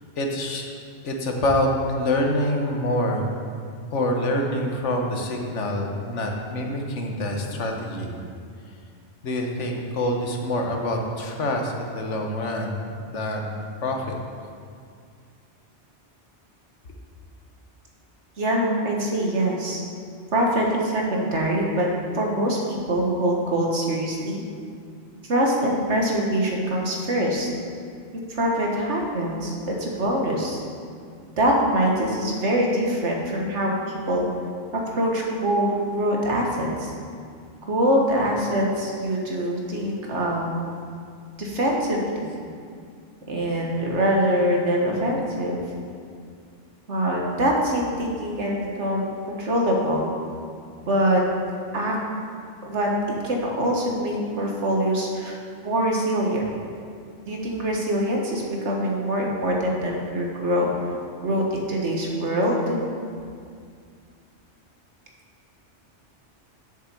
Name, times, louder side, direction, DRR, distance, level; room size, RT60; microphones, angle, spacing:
voice 1, 0.2-0.7 1.0-3.4 3.9-8.1 9.2-13.5 13.8-14.2, left 1 dB, 85° left, 2 dB, 1.4 m, -26 dB
voice 2, 18.4-19.8 20.3-21.9 22.1-24.4 25.3-27.5 28.3-30.6 31.4-34.3 34.9-36.9 37.7-40.7 41.4-42.2 43.3-45.6 46.9-49.1 49.4-50.1 50.9-51.2 51.7-52.0 52.7-52.9 53.2-55.4 55.6-56.4 57.3-60.7 61.2-62.8, right 1 dB, 80° right, -1 dB, 1.8 m, -24 dB
7.4 x 6.9 x 7.0 m, 2.2 s
omnidirectional pair, 1.2 m